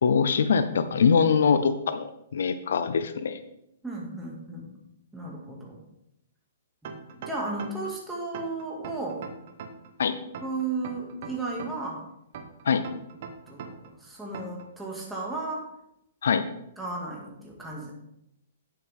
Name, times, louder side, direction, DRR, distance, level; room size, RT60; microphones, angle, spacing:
voice 1, 0.0-3.4 10.0-10.1 12.6-12.8 16.2-16.5, left 6 dB, 75° left, 11 dB, 0.6 m, -23 dB
voice 2, 3.8-4.7 5.1-5.8 6.8-9.2 10.4-12.0 13.5-15.7 16.8-17.9, right 3 dB, 5° right, -4 dB, 2.1 m, -34 dB
sound 1, 6.8-7.9 8.3-9.9 10.3-11.9 12.3-13.9 14.3-14.7, right 6 dB, 55° right, 1.1 m, -40 dB
9.3 x 7.8 x 3.6 m, 0.80 s
hypercardioid pair, 135°, 0 cm